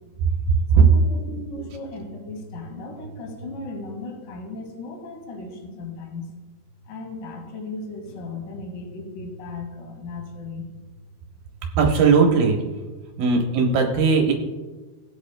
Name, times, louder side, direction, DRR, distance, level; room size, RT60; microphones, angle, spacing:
voice 1, 0.7-6.3 6.8-10.7 11.6-11.7 13.1-13.2, left 2 dB, 55° left, 1 dB, 3.1 m, -36 dB
voice 2, 11.8-12.6 13.2-14.3, right 5 dB, 70° right, 1 dB, 2.3 m, -17 dB
20.0 x 8.1 x 2.2 m, 1.3 s
omnidirectional pair, 5.1 m